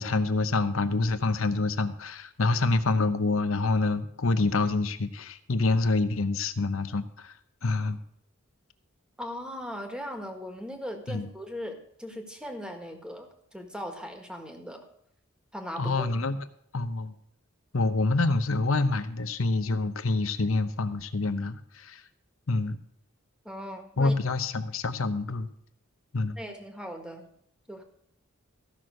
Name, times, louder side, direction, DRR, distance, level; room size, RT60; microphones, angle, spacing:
voice 1, 0.0-7.3 7.6-8.0 11.1-11.3 15.8-16.4 16.7-17.1 17.7-22.0 22.5-22.8 24.0-25.5 26.1-26.4, left 3 dB, 65° left, 11 dB, 0.8 m, -27 dB
voice 2, 9.2-14.8 15.5-16.1 23.4-24.1 26.4-27.3 27.7-27.8, equal, 5° right, 4 dB, 1.6 m, -39 dB
14.5 x 6.2 x 6.4 m, 0.72 s
head